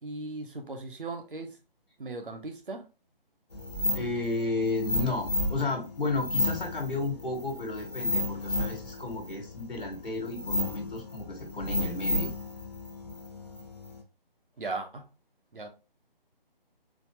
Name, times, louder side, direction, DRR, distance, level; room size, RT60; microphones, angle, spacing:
voice 1, 0.0-1.6 2.0-2.8 14.6-15.1 15.5-15.7, right 3 dB, 60° right, 1.0 m, -37 dB
sound 1, 3.5-14.0, left 2 dB, 45° left, 0.8 m, -33 dB
voice 2, 3.9-12.3, left 3 dB, 65° left, 1.3 m, -33 dB
4.2 x 2.5 x 3.0 m
figure-of-eight pair, 150°, 29 cm